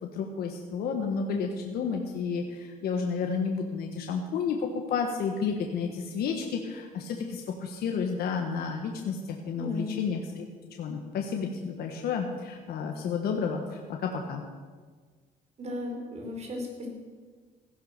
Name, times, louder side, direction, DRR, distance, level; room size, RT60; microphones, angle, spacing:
voice 1, 0.0-10.4 10.8-14.4, left 5 dB, 65° left, 2 dB, 1.5 m, -31 dB
voice 2, 9.6-9.9 15.6-16.9, left 1 dB, 40° right, 1 dB, 4.7 m, -35 dB
16.0 x 11.0 x 6.7 m, 1.5 s
cardioid pair, 110°, 17 cm